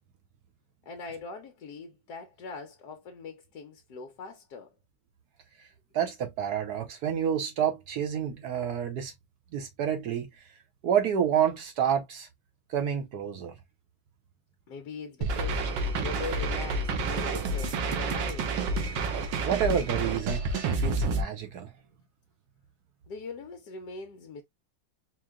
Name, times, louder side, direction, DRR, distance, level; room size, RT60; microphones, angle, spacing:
voice 1, 0.9-4.7 14.7-15.6 16.0-18.6 23.1-24.4, left 4 dB, 70° left, 1.3 m, -41 dB
voice 2, 5.9-9.1 9.5-10.3 10.8-12.3 12.7-13.5 19.4-21.7, right 8 dB, 65° right, 1.2 m, -29 dB
sound 1, 15.2-21.2, right 3 dB, 85° right, 1.6 m, -29 dB
4.5 x 2.1 x 3.6 m
omnidirectional pair, 2.0 m